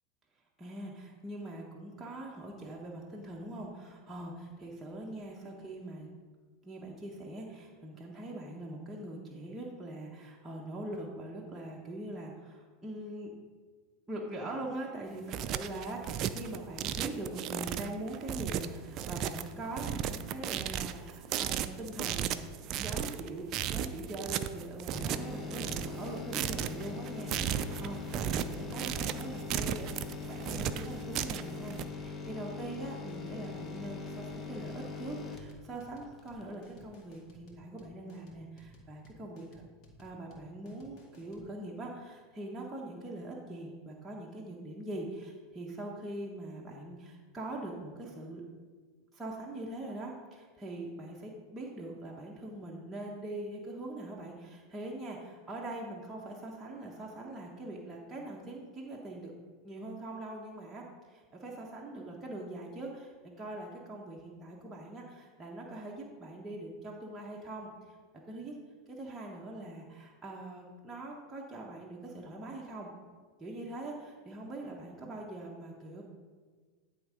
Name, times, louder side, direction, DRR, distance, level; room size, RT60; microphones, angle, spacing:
voice 1, 0.6-6.1 6.6-13.3 14.1-22.3 22.7-29.9 30.3-39.6 40.0-48.4 49.1-59.3 59.6-68.0 68.3-68.5 68.9-72.9 73.4-76.0, right 1 dB, 15° right, -4 dB, 1.3 m, -42 dB
sound 1, 15.1-31.8, right 10 dB, 45° right, 0.4 m, -35 dB
sound 2, 24.9-36.5 36.9-37.0, left 4 dB, 25° left, 1.0 m, -42 dB
sound 3, 25.4-41.5, left 1 dB, 50° left, 2.0 m, -57 dB
11.0 x 3.7 x 5.1 m, 1.5 s
hypercardioid pair, 100°, 0 cm